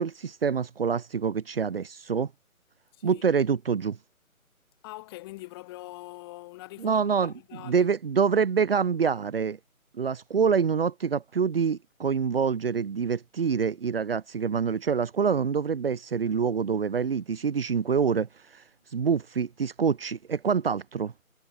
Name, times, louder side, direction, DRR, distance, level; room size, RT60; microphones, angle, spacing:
voice 1, 0.0-2.3 3.0-4.0 6.8-7.3 7.6-9.6 9.9-18.6 18.9-21.1, right 6 dB, 40° right, 2.9 m, -26 dB
voice 2, 2.9-3.2 4.8-7.9, left 20 dB, 15° left, 7.0 m, -43 dB
figure-of-eight pair, 165°, 42 cm